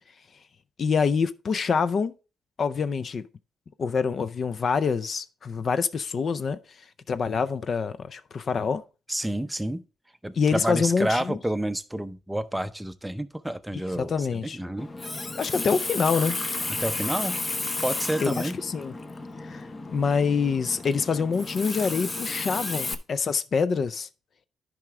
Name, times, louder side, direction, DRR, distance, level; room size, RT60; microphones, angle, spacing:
voice 1, 0.8-2.1 2.6-3.2 3.8-6.6 7.1-8.8 10.4-11.4 14.0-14.6 15.4-16.4 18.2-18.9 19.4-24.1, left 5 dB, 50° left, 0.4 m, -26 dB
voice 2, 9.1-9.8 10.2-14.9 16.7-17.4 17.8-18.5, right 1 dB, 5° right, 0.6 m, -29 dB
Water tap faucet, 14.8-22.9, left 3 dB, 30° left, 0.8 m, -33 dB
10.5 x 4.9 x 3.5 m
cardioid pair, 90°, 0 cm